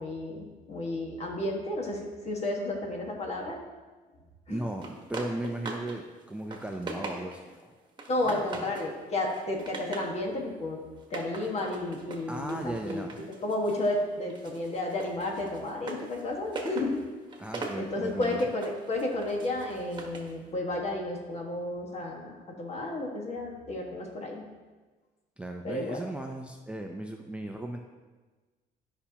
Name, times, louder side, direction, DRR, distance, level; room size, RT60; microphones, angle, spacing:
voice 1, 0.0-3.6 4.5-4.6 8.1-10.8 11.1-13.1 13.4-17.0 17.8-24.4 25.6-26.0, left 1 dB, 40° left, 0 dB, 1.6 m, -32 dB
voice 2, 4.5-7.7 8.2-8.7 12.3-13.2 17.4-18.4 25.4-27.8, right 1 dB, 5° right, 2 dB, 0.6 m, -36 dB
sound 1, 4.8-6.0 6.3-7.5 8.0-8.9 9.3-10.1 11.0-14.0 14.3-20.3, right 3 dB, 25° right, 1.4 m, -41 dB
12.0 x 5.7 x 2.9 m, 1.3 s
cardioid pair, 110°, 17 cm